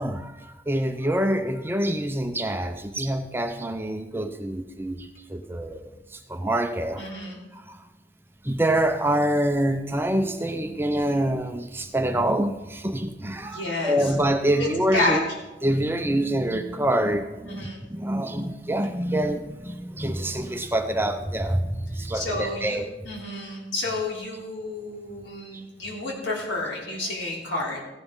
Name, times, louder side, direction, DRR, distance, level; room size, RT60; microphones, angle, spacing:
voice 1, 0.0-7.0 7.5-7.8 8.4-15.2 15.6-22.9 25.5-25.6, right 1 dB, 10° right, 7 dB, 0.5 m, -26 dB
voice 2, 7.0-7.4 13.5-13.9 14.6-15.2 17.5-17.8 22.1-22.8 23.0-27.8, left 2 dB, 80° left, -3 dB, 3.3 m, -30 dB
15.0 x 11.0 x 3.7 m, 1.1 s
head